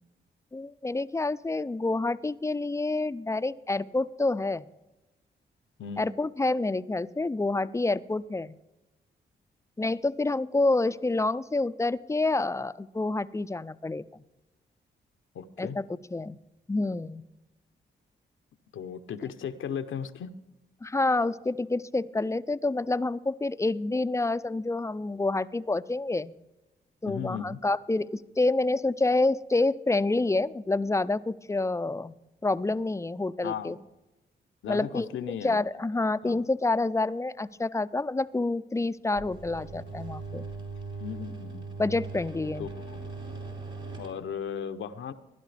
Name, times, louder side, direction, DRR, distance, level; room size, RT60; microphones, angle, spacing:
voice 1, 0.5-4.7 6.0-8.6 9.8-14.2 15.6-15.8 16.1-16.4 16.7-17.2 20.8-26.3 27.0-32.1 32.4-33.8 34.7-35.1 35.4-40.5 41.8-42.7, left 2 dB, 15° left, 15 dB, 0.4 m, -28 dB
voice 2, 5.8-6.1 15.3-15.8 18.7-20.3 27.1-27.6 33.4-33.8 34.6-35.6 36.2-36.4 41.0-41.7 42.6-43.0 44.0-45.1, left 8 dB, 75° left, 10 dB, 0.7 m, -36 dB
sound 1, 39.1-44.1, right 4 dB, 70° right, 3.0 m, -39 dB
16.0 x 11.5 x 3.3 m, 1.0 s
supercardioid pair, 55°, 20 cm